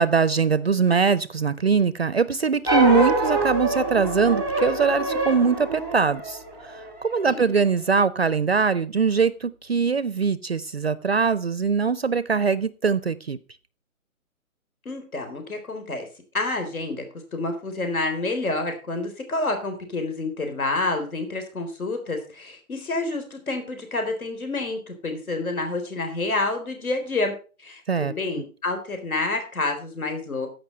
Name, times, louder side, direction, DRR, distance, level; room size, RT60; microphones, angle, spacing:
voice 1, 0.0-6.4 6.7-13.4 27.9-28.1, right 5 dB, 45° right, 17 dB, 0.5 m, -22 dB
sound 1, 2.7-7.2, right 1 dB, 5° left, 1.0 m, -25 dB
voice 2, 7.2-7.6 14.9-16.1 16.3-17.0 17.3-30.5, left 2 dB, 75° left, 6 dB, 3.9 m, -28 dB
15.0 x 5.5 x 5.4 m, 0.35 s
hypercardioid pair, 165°, 43 cm